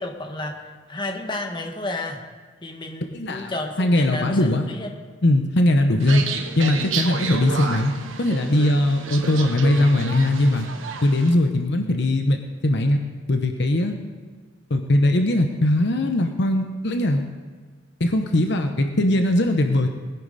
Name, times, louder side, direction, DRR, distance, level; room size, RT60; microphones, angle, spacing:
voice 1, 0.0-2.2 2.6-5.0, left 2 dB, 25° left, 2 dB, 1.4 m, -31 dB
voice 2, 3.1-3.5 3.8-4.7 5.2-6.2 6.6-7.9 8.2-10.7 11.0-13.0 13.3-13.9 14.7-17.2 18.0-19.9, left 1 dB, 60° left, 5 dB, 1.0 m, -20 dB
sound 1, 6.0-11.3, right 4 dB, 80° right, 1.3 m, -30 dB
20.0 x 10.5 x 4.2 m, 1.5 s
head